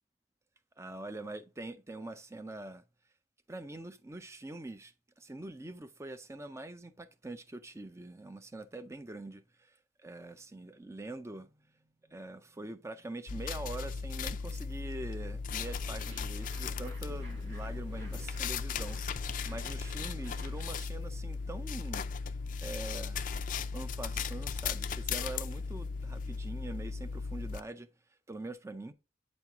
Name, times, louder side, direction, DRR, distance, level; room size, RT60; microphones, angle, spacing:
voice 1, 0.8-2.8 3.5-9.8 10.0-11.5 12.0-22.3 22.6-23.2 23.7-27.9 28.3-28.9, right 2 dB, 15° right, 0.5 m, -44 dB
sound 1, 13.3-27.6, left 5 dB, 45° left, 0.4 m, -37 dB
sound 2, 15.5-20.6, equal, 70° right, 3.0 m, -51 dB
9.0 x 4.5 x 3.5 m
head